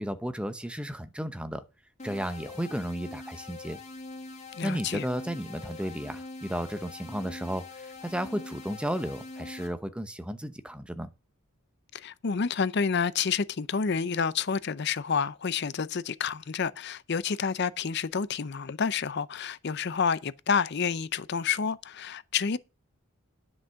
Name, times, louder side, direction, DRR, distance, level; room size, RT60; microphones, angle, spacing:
voice 1, 0.0-1.6 2.0-3.8 4.6-11.1, equal, 5° right, 0.7 m, -34 dB
sound 1, 2.0-9.7, left 3 dB, 30° left, 1.9 m, -43 dB
voice 2, 4.5-5.0 11.9-22.6, left 6 dB, 50° left, 0.5 m, -29 dB
10.0 x 6.3 x 5.7 m
head